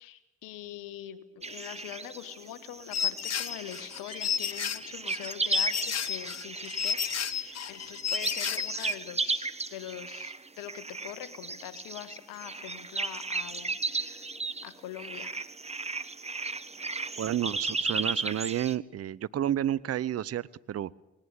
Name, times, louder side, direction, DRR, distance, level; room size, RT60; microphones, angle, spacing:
voice 1, 0.0-7.0 7.3-14.3 14.6-15.3, left 13 dB, 75° left, 13 dB, 1.5 m, -43 dB
sound 1, 1.4-18.8, right 3 dB, 20° right, 1.3 m, -35 dB
sound 2, 2.9-9.0, left 7 dB, 50° left, 1.3 m, -32 dB
voice 2, 17.2-20.9, right 11 dB, 45° right, 20 dB, 0.7 m, -31 dB
19.5 x 19.0 x 9.6 m, 0.93 s
hypercardioid pair, 50°, 33 cm